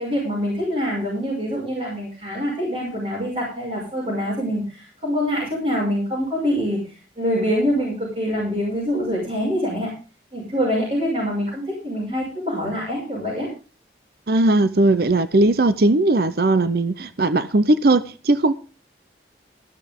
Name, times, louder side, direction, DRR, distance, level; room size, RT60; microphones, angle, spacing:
voice 1, 0.0-9.9 10.3-13.5, equal, 35° right, 6.0 m, -25 dB
voice 2, 14.3-18.5, right 2 dB, 55° right, 0.6 m, -18 dB
14.5 x 12.0 x 3.6 m
head